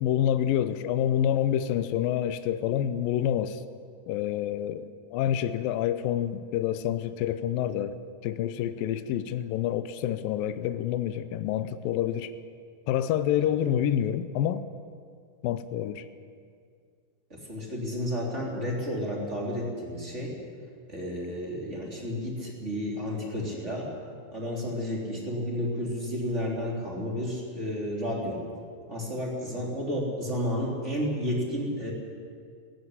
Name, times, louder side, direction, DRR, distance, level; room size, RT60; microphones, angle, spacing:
voice 1, 0.0-3.6 4.1-12.3 12.9-14.7 15.4-16.1, left 10 dB, 80° left, 12 dB, 2.4 m, -27 dB
voice 2, 17.3-20.3 20.9-23.9 24.3-28.4 28.9-31.9, equal, 20° right, -2 dB, 3.4 m, -31 dB
17.0 x 15.5 x 9.9 m, 2.2 s
omnidirectional pair, 4.1 m